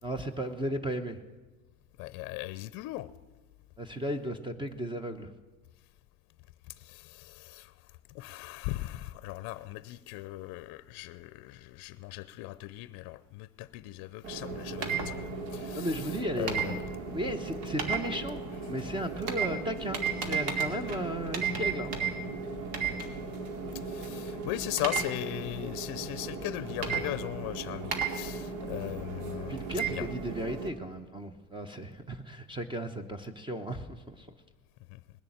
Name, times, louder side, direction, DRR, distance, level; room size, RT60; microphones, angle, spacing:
voice 1, 0.0-1.2 3.8-5.3 15.7-16.8 17.1-18.4 18.6-20.0 20.3-21.9 29.5-34.3, equal, 10° right, 0.8 m, -35 dB
voice 2, 2.0-3.1 6.7-16.9 23.7-29.7 29.9-30.1 34.9-35.0, left 17 dB, 55° left, 0.6 m, -38 dB
sound 1, 14.2-30.7, right 5 dB, 70° right, 2.5 m, -35 dB
19.5 x 6.8 x 9.2 m
supercardioid pair, 115°, 44 cm